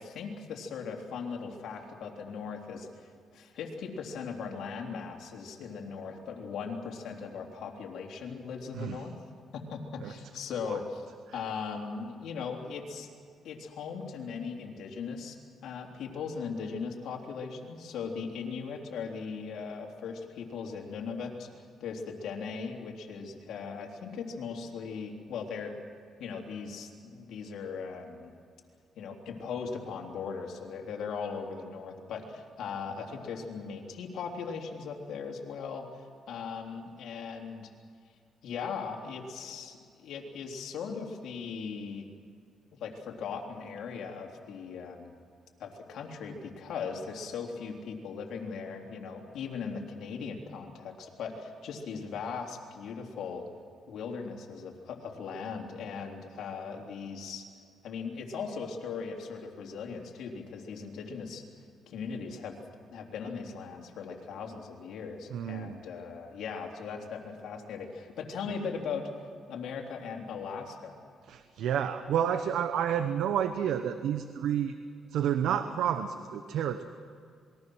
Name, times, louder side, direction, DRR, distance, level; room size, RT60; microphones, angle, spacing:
voice 1, 0.0-9.1 9.5-11.1 11.3-13.1 13.4-25.7 26.2-28.3 28.9-37.7 38.4-42.1 42.8-45.2 45.6-53.5 53.9-57.5 57.8-61.4 61.9-62.5 62.9-71.0, left 5 dB, 75° left, 1 dB, 3.3 m, -39 dB
voice 2, 8.7-9.1 10.0-10.1 10.6-10.8 11.3-11.4 65.3-65.8 68.5-68.6 71.2-74.8 75.1-76.9, right 9 dB, 80° right, 9 dB, 1.0 m, -30 dB
27.0 x 21.5 x 6.3 m, 2.2 s
cardioid pair, 90°, 0 cm